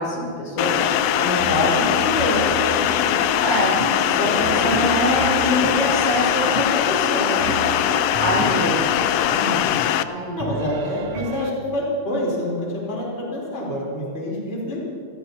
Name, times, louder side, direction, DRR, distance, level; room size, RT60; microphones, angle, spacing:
voice 1, 0.0-1.0 3.4-3.8 4.1-7.6 8.2-8.8 10.0-10.6, left 1 dB, 70° left, -6 dB, 6.4 m, -24 dB
sound 1, 0.6-10.0, left 11 dB, 85° left, 1.4 m, -21 dB
sound 2, 1.0-11.5, right 6 dB, 80° right, 1.3 m, -35 dB
voice 2, 1.2-2.4 2.7-3.1 4.3-4.7 8.4-8.7 9.3-9.8 10.4-14.8, left 1 dB, 20° left, -5 dB, 3.8 m, -26 dB
sound 3, 3.8-4.0 4.7-4.9 5.6-5.8 6.6-6.7 7.5-7.6 8.4-8.5, right 1 dB, 45° left, 1.1 m, -28 dB
28.5 x 17.0 x 2.9 m, 2.4 s
omnidirectional pair, 3.5 m